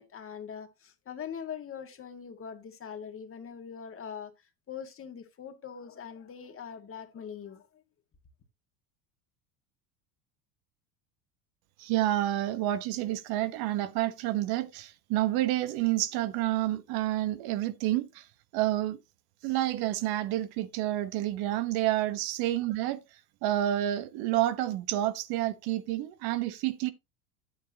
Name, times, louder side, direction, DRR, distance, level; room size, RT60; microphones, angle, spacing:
voice 1, 0.0-7.8, left 7 dB, 30° left, 1.8 m, -42 dB
voice 2, 11.8-18.2 18.5-19.0 19.4-23.0 23.4-26.9, right 14 dB, 60° right, 1.1 m, -29 dB
9.4 x 8.6 x 2.8 m
supercardioid pair, 100°, 42 cm